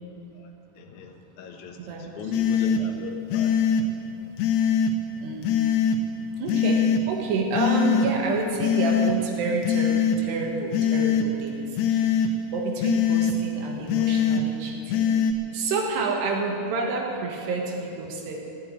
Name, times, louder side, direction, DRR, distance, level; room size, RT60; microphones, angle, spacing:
voice 1, 0.3-3.5, left 5 dB, 60° left, 2 dB, 2.2 m, -39 dB
voice 2, 1.8-2.1 3.9-4.3 5.2-5.6 6.2-15.2 15.5-18.4, right 3 dB, 90° right, 0 dB, 3.6 m, -29 dB
sound 1, 2.3-2.8 3.3-3.8 4.4-4.9 5.4-6.0 6.5-7.0 7.5-8.1 8.6-9.1 9.6-10.2 10.7-11.3 11.8-12.3 12.8-13.3 13.9-14.4 14.9-15.3, left 8 dB, 80° left, 2.9 m, -22 dB
16.0 x 8.8 x 9.4 m, 2.8 s
omnidirectional pair, 4.7 m